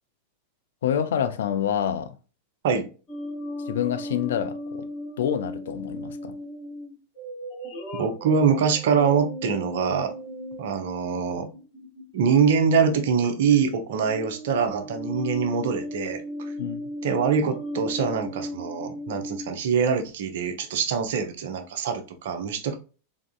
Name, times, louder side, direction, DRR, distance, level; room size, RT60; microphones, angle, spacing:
voice 1, 0.8-2.1 3.7-4.8 5.2-6.3 16.6-16.9, left 9 dB, 60° left, 0.4 m, -27 dB
sound 1, 3.1-12.5 13.2-13.6 13.9-19.5, equal, 20° left, 2.0 m, -36 dB
voice 2, 7.9-10.1 10.6-11.5 12.1-16.5 17.0-22.8, right 6 dB, 55° right, 0.7 m, -24 dB
3.6 x 3.5 x 2.3 m
figure-of-eight pair, 90°, 0 cm